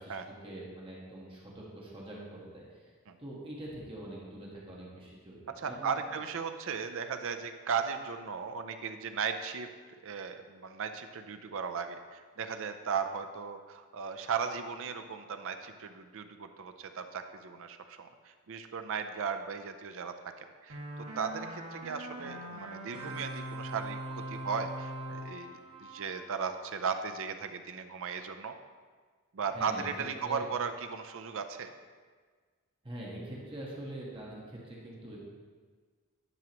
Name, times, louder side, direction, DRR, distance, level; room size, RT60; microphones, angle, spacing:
voice 1, 0.4-2.9 3.2-6.2 29.4-29.8 30.2-30.4 32.8-35.2, right 1 dB, 25° right, -5 dB, 1.4 m, -44 dB
voice 2, 5.6-9.7 10.0-28.5 29.3-31.7, right 6 dB, 65° right, 8 dB, 0.5 m, -36 dB
sound 1, 20.7-26.8, right 1 dB, 85° right, 1.7 m, -42 dB
10.5 x 6.1 x 3.0 m, 1.6 s
head